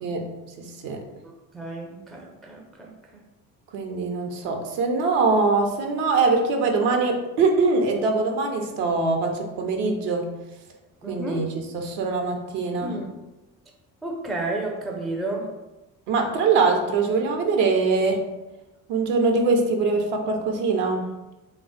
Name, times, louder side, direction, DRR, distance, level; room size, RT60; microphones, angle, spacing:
voice 1, 0.6-1.0 3.7-10.3 11.1-13.0 16.1-18.2 18.9-21.1, right 4 dB, 65° right, 3 dB, 0.8 m, -23 dB
voice 2, 1.5-3.2 11.0-11.5 12.8-13.0 14.0-15.5, right 2 dB, ahead, 1 dB, 0.4 m, -31 dB
3.4 x 2.3 x 3.8 m, 1.0 s
hypercardioid pair, 50°, 48 cm